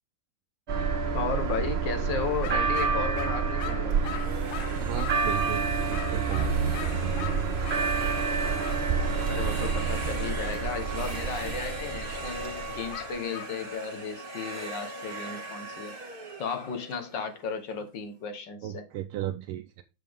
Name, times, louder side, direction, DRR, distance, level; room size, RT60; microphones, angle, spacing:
sound 1, 0.7-13.1, right 5 dB, 50° right, 0.7 m, -28 dB
voice 1, 1.1-4.0 9.3-15.9 16.4-18.8, left 5 dB, 65° left, 1.6 m, -34 dB
sound 2, 2.4-5.3 5.9-7.9 8.6-8.8 12.9-13.6, left 12 dB, 85° left, 1.6 m, -40 dB
sound 3, 3.9-17.8, right 1 dB, 30° right, 1.5 m, -39 dB
voice 2, 4.8-6.6 11.4-11.6 18.6-19.8, right 11 dB, 85° right, 1.5 m, -35 dB
7.5 x 6.4 x 3.4 m
omnidirectional pair, 2.3 m